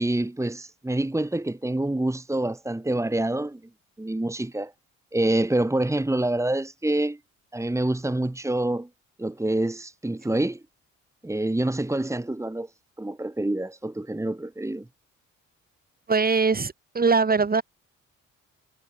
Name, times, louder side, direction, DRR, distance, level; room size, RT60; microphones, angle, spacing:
voice 1, 0.0-3.6 4.0-4.7 5.1-7.2 7.5-8.9 9.2-10.6 11.2-12.7 13.0-14.9, right 1 dB, 10° right, 2.7 m, -26 dB
voice 2, 16.1-17.6, right 4 dB, 30° right, 4.6 m, -22 dB
cardioid pair, 90°, 30 cm